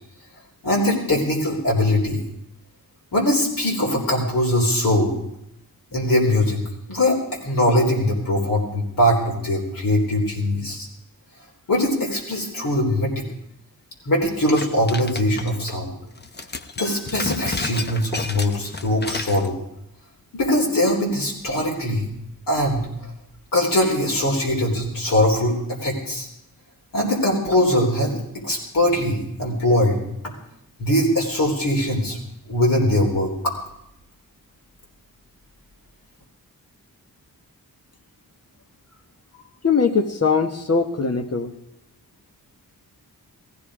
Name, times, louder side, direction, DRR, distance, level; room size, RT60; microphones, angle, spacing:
voice 1, 0.6-2.2 3.1-5.1 5.9-6.6 6.9-10.9 11.7-13.2 14.1-15.9 16.8-19.5 20.3-22.1 22.5-22.9 23.5-26.3 26.9-28.2 28.4-30.0 30.8-32.2 32.5-33.6, left 1 dB, 70° left, -2 dB, 3.9 m, -21 dB
sound 1, 14.6-15.8 16.2-19.5, left 3 dB, 30° left, 0.8 m, -32 dB
voice 2, 39.6-41.5, left 5 dB, 45° left, 7 dB, 1.4 m, -21 dB
18.0 x 15.0 x 5.0 m, 0.80 s
wide cardioid pair, 135°, 35 cm